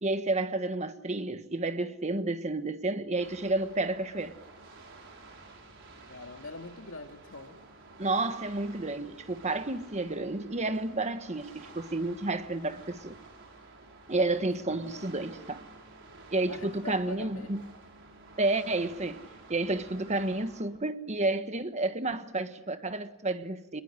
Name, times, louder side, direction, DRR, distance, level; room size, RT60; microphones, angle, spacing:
voice 1, 0.0-4.4 8.0-13.2 14.1-15.7 16.3-17.7 18.4-19.2 19.5-23.8, right 2 dB, 35° right, 1.3 m, -31 dB
sound 1, 3.2-20.6, right 3 dB, 65° right, 5.3 m, -51 dB
voice 2, 6.1-7.6 14.4-15.1 16.5-17.6, left 2 dB, 80° left, 2.5 m, -44 dB
27.5 x 21.5 x 10.0 m
head